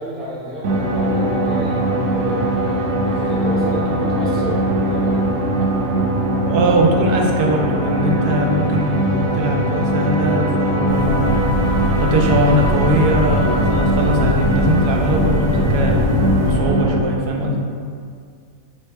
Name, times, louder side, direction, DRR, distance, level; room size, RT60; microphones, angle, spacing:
voice 1, 0.0-5.5, equal, ahead, -7 dB, 0.5 m, -30 dB
sound 1, 0.6-17.0, right 1 dB, 65° right, 0.6 m, -20 dB
voice 2, 6.5-11.4 12.0-17.6, right 1 dB, 90° right, 1 dB, 1.1 m, -20 dB
sound 2, 10.9-16.5, left 1 dB, 70° left, 1.1 m, -22 dB
4.2 x 3.4 x 3.4 m, 2.2 s
omnidirectional pair, 1.6 m